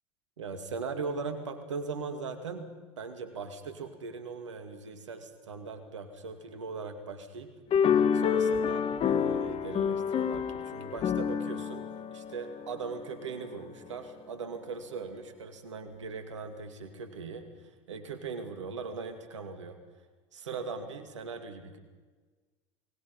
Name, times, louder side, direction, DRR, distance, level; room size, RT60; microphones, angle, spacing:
voice 1, 0.4-2.7 3.0-7.5 8.1-11.8 12.1-17.4 17.9-19.8 20.3-21.8, right 4 dB, 85° right, 7 dB, 2.6 m, -39 dB
sound 1, 7.7-13.3, left 7 dB, 40° left, 1.4 m, -28 dB
28.5 x 20.0 x 5.6 m, 1.4 s
hypercardioid pair, 75°, 15 cm